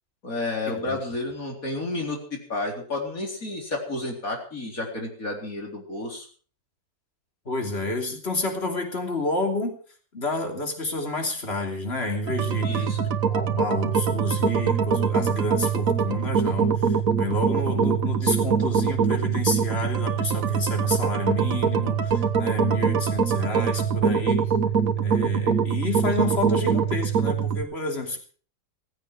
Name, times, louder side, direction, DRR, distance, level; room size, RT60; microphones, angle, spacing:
voice 1, 0.2-2.2 2.5-6.3 12.6-13.1, left 2 dB, 70° left, 1 dB, 4.6 m, -31 dB
voice 2, 7.4-9.8 10.1-12.8 13.3-24.5 25.0-28.2, left 2 dB, 45° left, 3 dB, 3.3 m, -30 dB
sound 1, 12.3-27.6, right 6 dB, 65° right, 1.6 m, -23 dB
16.0 x 15.5 x 4.8 m, 0.43 s
omnidirectional pair, 1.5 m